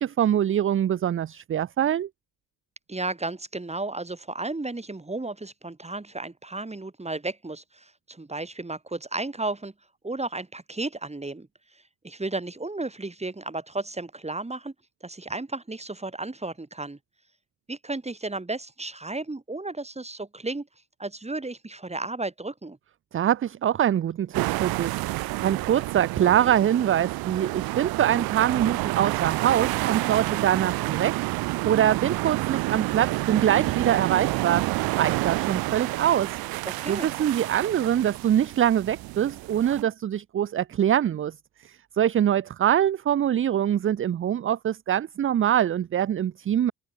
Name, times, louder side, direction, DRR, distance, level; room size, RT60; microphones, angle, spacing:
voice 1, 0.0-2.1 23.1-34.7 35.0-36.4 36.9-41.4 41.6-46.7, right 10 dB, 35° right, 0.5 m, -24 dB
voice 2, 2.9-9.7 10.0-11.5 11.7-14.7 15.0-17.0 17.7-20.7 21.0-22.8 36.7-37.1, right 2 dB, 20° right, 4.7 m, -33 dB
sound 1, 24.3-39.8, right 21 dB, 90° right, 0.6 m, -29 dB
supercardioid pair, 70°, 35 cm